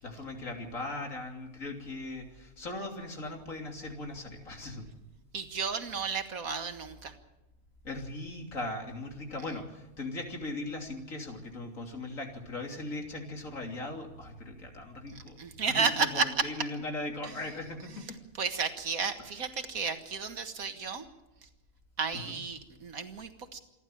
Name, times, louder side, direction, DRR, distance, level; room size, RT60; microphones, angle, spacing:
voice 1, 0.0-4.9 7.8-15.4 15.7-18.2 22.1-22.4, left 2 dB, 70° left, 3 dB, 3.5 m, -39 dB
voice 2, 5.3-7.1 15.4-16.5 18.4-21.0 22.0-23.6, right 5 dB, 90° right, 8 dB, 2.1 m, -32 dB
27.5 x 12.0 x 9.0 m, 1.0 s
omnidirectional pair, 1.4 m